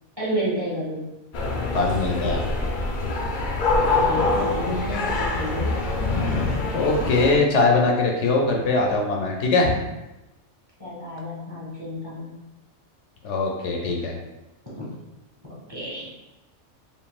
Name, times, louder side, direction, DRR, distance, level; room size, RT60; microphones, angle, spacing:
voice 1, 0.2-1.1 3.7-5.8 10.8-12.3 14.6-14.9 15.7-16.1, equal, 20° right, -7 dB, 1.3 m, -31 dB
sound 1, 1.3-7.4, left 3 dB, 55° left, 0.6 m, -24 dB
voice 2, 1.7-2.5 6.7-9.7 13.2-14.2, left 3 dB, 75° left, 0 dB, 0.9 m, -21 dB
5.2 x 2.6 x 2.3 m, 1.0 s
omnidirectional pair, 1.2 m